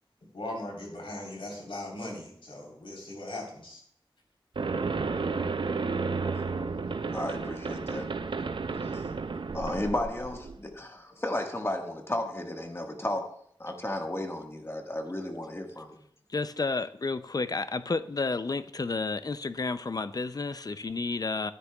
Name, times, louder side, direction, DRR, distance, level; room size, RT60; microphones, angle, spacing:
voice 1, 0.3-3.8, left 1 dB, 80° left, 3.6 m, -39 dB
sound 1, 4.6-10.6, right 4 dB, 65° right, 0.5 m, -32 dB
voice 2, 7.1-8.1 8.9-9.0 9.5-13.3 13.6-16.0, left 1 dB, 30° left, 1.5 m, -33 dB
voice 3, 16.3-21.5, left 3 dB, 45° left, 0.4 m, -31 dB
13.5 x 9.8 x 2.3 m
wide cardioid pair, 75°, 9 cm